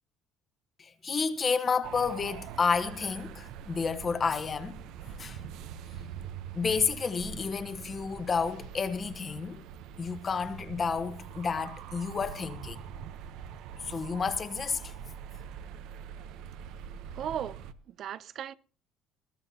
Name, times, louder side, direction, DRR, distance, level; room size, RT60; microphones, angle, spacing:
voice 1, 0.8-5.4 6.5-9.6 10.0-12.8 13.8-14.9, left 5 dB, 25° left, 1.1 m, -31 dB
sound 1, 1.8-17.7, right 8 dB, 70° right, 0.8 m, -44 dB
voice 2, 17.1-18.5, right 9 dB, 45° right, 0.5 m, -37 dB
20.0 x 14.0 x 2.8 m
cardioid pair, 155°, 0 cm